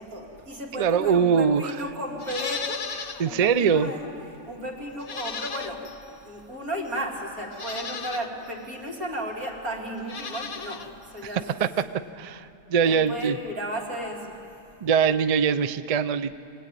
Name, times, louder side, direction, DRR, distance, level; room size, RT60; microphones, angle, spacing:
voice 1, 0.0-4.1 4.5-5.9 6.2-11.5 12.8-14.5, equal, 90° right, -2 dB, 3.4 m, -34 dB
voice 2, 0.8-1.7 3.2-3.9 11.6-11.7 12.2-13.4 14.8-16.4, right 6 dB, 55° right, 12 dB, 0.4 m, -22 dB
Livestock farm animals working animals, 2.2-3.3 3.7-3.8 5.0-6.0 6.9-7.0 7.5-8.3 10.0-10.9 11.2-11.3, left 6 dB, 50° left, 1.0 m, -35 dB
24.5 x 18.5 x 9.1 m, 2.7 s
omnidirectional pair, 1.5 m